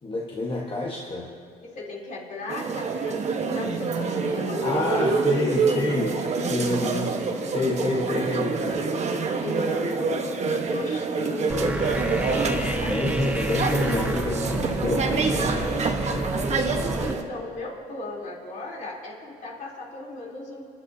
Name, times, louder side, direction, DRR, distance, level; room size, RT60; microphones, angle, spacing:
voice 1, 0.0-1.3 4.6-8.8 11.5-15.8, left 2 dB, 30° left, -3 dB, 1.4 m, -29 dB
voice 2, 1.6-3.2 3.5-5.1 9.4-13.4 16.4-20.6, left 3 dB, 50° left, -3 dB, 3.5 m, -36 dB
sound 1, 2.5-17.2, right 4 dB, 40° right, 1.2 m, -26 dB
sound 2, 11.5-17.1, right 1 dB, 10° right, 0.7 m, -30 dB
29.5 x 11.0 x 2.8 m, 2.3 s
cardioid pair, 110°, 17 cm